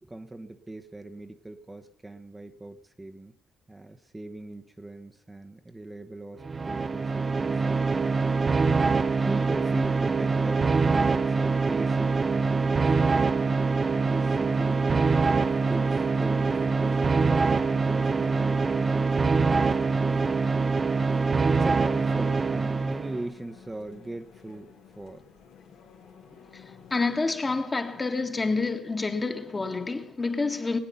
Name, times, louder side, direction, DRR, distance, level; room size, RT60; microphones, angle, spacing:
voice 1, 0.0-3.3 3.7-8.2 9.2-13.0 13.3-15.2 15.7-20.4 21.5-24.7 25.0-25.2, right 2 dB, 15° right, 1.0 m, -39 dB
sound 1, 6.4-23.3, right 4 dB, 40° right, 0.7 m, -24 dB
sound 2, 13.8-27.2, left 6 dB, 80° left, 2.1 m, -52 dB
voice 2, 26.5-30.8, left 3 dB, 30° left, 1.6 m, -28 dB
20.5 x 9.0 x 5.6 m
hypercardioid pair, 50°, 0 cm